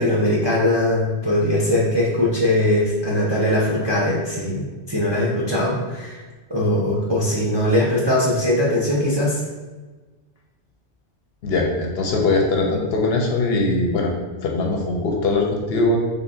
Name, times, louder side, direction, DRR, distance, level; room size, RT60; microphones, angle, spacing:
voice 1, 0.0-6.2 6.5-9.4, left 1 dB, 35° right, -6 dB, 0.4 m, -20 dB
voice 2, 11.4-14.1 14.4-16.0, left 2 dB, 65° left, 0 dB, 0.7 m, -21 dB
3.8 x 3.3 x 2.4 m, 1.3 s
omnidirectional pair, 1.2 m